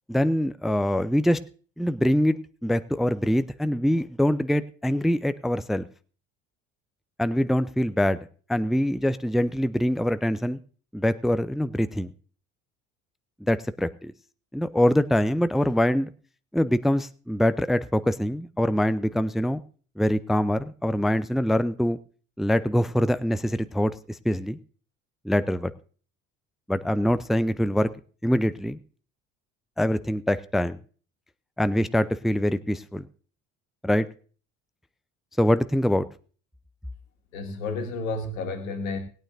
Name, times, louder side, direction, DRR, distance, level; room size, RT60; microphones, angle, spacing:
voice 1, 0.1-1.4 1.8-5.9 7.2-8.2 8.5-10.6 10.9-12.1 13.4-14.1 14.5-16.1 16.5-19.6 20.0-22.0 22.4-24.6 25.2-25.7 26.7-27.9 28.2-28.8 29.8-30.8 31.6-33.0 33.8-34.1 35.4-36.1, equal, ahead, 13 dB, 0.6 m, -24 dB
voice 2, 37.3-39.0, left 3 dB, 80° left, 5 dB, 2.1 m, -31 dB
20.0 x 9.3 x 2.6 m, 0.39 s
hypercardioid pair, 60°, 39 cm